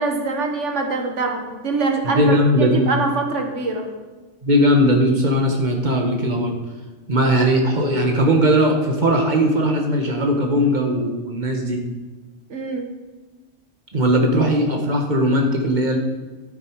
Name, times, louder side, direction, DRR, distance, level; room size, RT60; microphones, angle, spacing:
voice 1, 0.0-3.9 12.5-12.9, right 3 dB, 80° right, 4 dB, 1.6 m, -24 dB
voice 2, 2.0-2.9 4.4-6.6 7.1-11.8 13.9-16.0, equal, 40° right, 2 dB, 1.5 m, -18 dB
11.0 x 9.0 x 4.7 m, 1.3 s
omnidirectional pair, 1.2 m